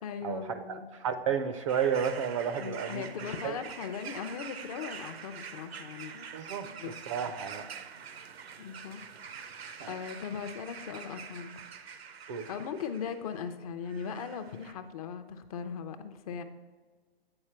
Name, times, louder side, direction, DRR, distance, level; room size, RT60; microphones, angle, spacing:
voice 1, 0.0-0.9 2.6-6.3 6.8-6.9 8.6-9.0 9.9-11.6 12.5-16.4, left 7 dB, 35° left, 9 dB, 0.5 m, -39 dB
voice 2, 0.7-3.0 3.4-3.6 6.3-6.7 7.1-7.7 9.8-9.9 12.3-12.5, right 7 dB, 35° right, 9 dB, 0.4 m, -31 dB
sound 1, 1.7-13.5 13.9-14.7, right 7 dB, 85° right, 0.7 m, -45 dB
8.7 x 4.4 x 4.4 m, 1.4 s
hypercardioid pair, 140°, 30 cm